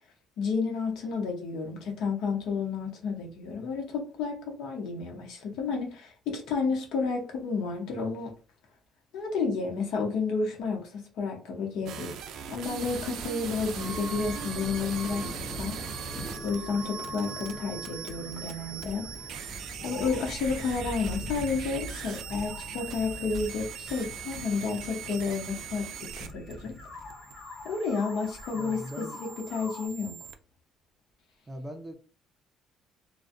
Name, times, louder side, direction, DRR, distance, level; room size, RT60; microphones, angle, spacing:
voice 1, 0.4-8.3 9.1-12.2 12.5-15.3 15.6-15.8 16.4-19.1 19.8-26.8 27.6-30.1, left 4 dB, 80° left, 0.8 m, -31 dB
sound 1, 11.9-30.3, right 8 dB, 70° right, 0.3 m, -40 dB
sound 2, 13.8-29.9, left 1 dB, 40° left, 0.6 m, -42 dB
voice 2, 28.5-29.2 31.5-31.9, equal, 20° right, 0.5 m, -40 dB
2.5 x 2.1 x 2.4 m
cardioid pair, 120°, 0 cm